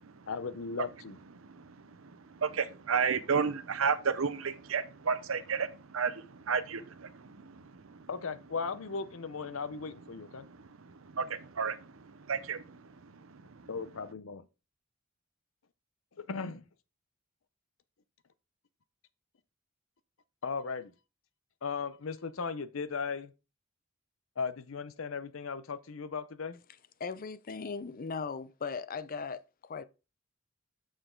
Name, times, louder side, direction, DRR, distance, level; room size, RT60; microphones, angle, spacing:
voice 1, 0.3-1.2 8.1-10.5 13.7-14.5 16.2-16.7 20.4-20.9 21.6-23.3 24.4-26.6, left 5 dB, 80° left, 0.7 m, -37 dB
voice 2, 2.0-7.6 7.9-8.0 11.1-12.8 13.2-13.4, right 6 dB, 85° right, 0.8 m, -32 dB
voice 3, 27.0-29.8, left 5 dB, 45° left, 0.5 m, -38 dB
7.0 x 6.4 x 3.8 m
head